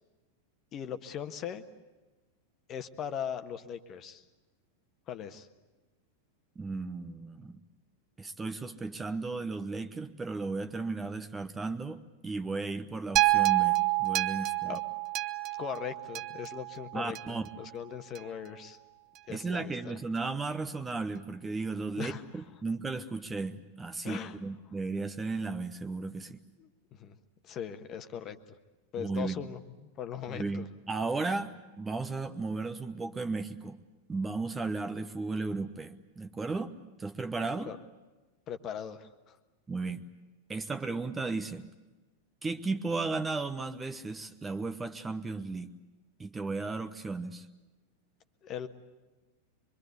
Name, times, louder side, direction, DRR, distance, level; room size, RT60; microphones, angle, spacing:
voice 1, 0.7-1.6 2.7-4.2 5.1-5.5 14.7-14.8 15.6-18.8 19.3-20.0 22.0-22.2 24.0-24.4 26.6-27.2 27.4-28.4 28.9-29.6 30.0-30.7 37.7-37.8 38.5-39.4 48.4-48.7, left 8 dB, 30° left, 8 dB, 1.4 m, -39 dB
voice 2, 6.6-7.6 8.2-14.8 16.9-17.5 19.3-26.4 29.0-29.4 30.3-33.8 34.1-37.7 39.7-40.1 40.5-41.7 42.4-45.7 46.2-47.5, right 3 dB, 15° right, 10 dB, 1.1 m, -35 dB
sound 1, 13.2-17.5 18.2-18.3, right 20 dB, 35° right, 0.9 m, -28 dB
24.5 x 24.0 x 8.2 m, 1.2 s
figure-of-eight pair, 90°, 0 cm